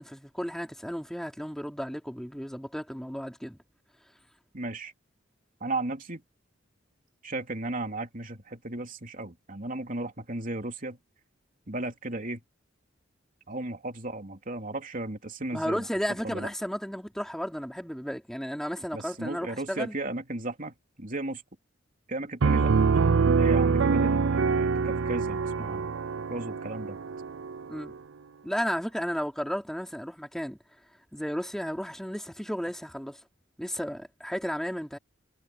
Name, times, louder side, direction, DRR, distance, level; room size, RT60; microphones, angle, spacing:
voice 1, 0.0-3.6 15.5-19.9 27.7-27.9 28.4-30.6 31.1-33.2 33.6-35.0, equal, ahead, 3.1 m, -33 dB
voice 2, 4.5-4.9 5.6-6.2 7.2-11.0 11.7-12.4 13.5-15.9 16.2-16.5 18.9-21.4 22.1-22.7 23.3-25.9 26.3-27.0, right 2 dB, 45° right, 3.3 m, -35 dB
Piano, 22.4-27.9, right 5 dB, 70° right, 0.5 m, -25 dB
head